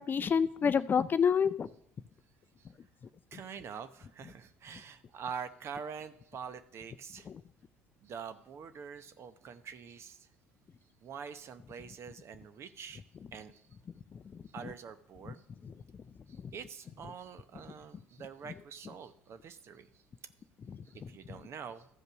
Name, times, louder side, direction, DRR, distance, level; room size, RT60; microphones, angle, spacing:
voice 1, 0.0-1.7 7.3-7.4 14.1-14.2 15.6-15.7 20.7-20.8, left 7 dB, 35° left, 15 dB, 0.4 m, -28 dB
voice 2, 3.3-7.3 8.0-10.3 11.0-13.0 13.3-13.6 14.5-15.4 16.3-20.0 20.8-21.9, right 6 dB, 50° right, 12 dB, 0.8 m, -45 dB
13.5 x 5.3 x 6.2 m, 0.76 s
hypercardioid pair, 65°, 6 cm